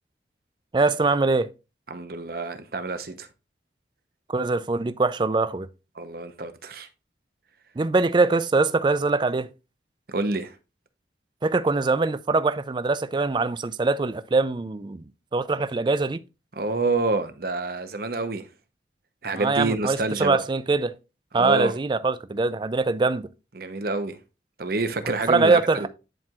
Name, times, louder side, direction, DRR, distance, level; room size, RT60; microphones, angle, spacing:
voice 1, 0.7-1.5 4.3-5.7 7.8-9.5 11.4-15.0 15.3-16.2 19.4-20.9 21.3-23.3 25.3-25.9, right 3 dB, 25° right, 0.3 m, -23 dB
voice 2, 1.9-3.3 5.9-6.9 10.1-10.5 16.6-18.4 19.2-20.4 21.4-21.7 23.6-24.2 24.6-25.9, right 3 dB, 55° right, 0.8 m, -27 dB
10.5 x 4.5 x 2.4 m
head